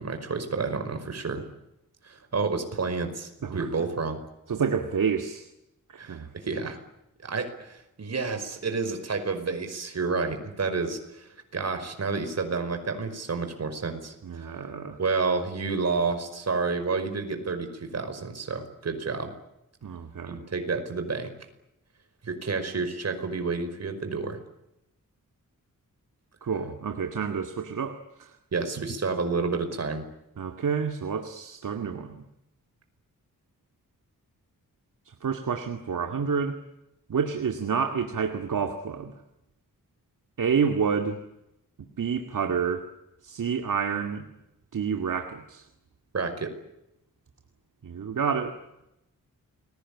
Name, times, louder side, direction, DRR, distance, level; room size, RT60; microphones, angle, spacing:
voice 1, 0.0-1.4 2.0-4.2 6.0-6.8 7.2-14.1 15.0-19.3 20.3-21.3 22.2-24.4 28.5-30.0 46.1-46.5, right 4 dB, 50° right, 7 dB, 5.4 m, -30 dB
voice 2, 4.5-5.5 5.9-6.3 14.2-15.0 19.8-20.4 26.4-28.3 30.4-32.2 35.2-36.6 37.1-39.1 40.4-41.2 42.0-42.9 43.2-44.2 44.7-45.6 47.8-48.6, right 6 dB, 70° right, 5 dB, 2.3 m, -29 dB
29.5 x 21.5 x 8.7 m, 0.87 s
wide cardioid pair, 150°, 33 cm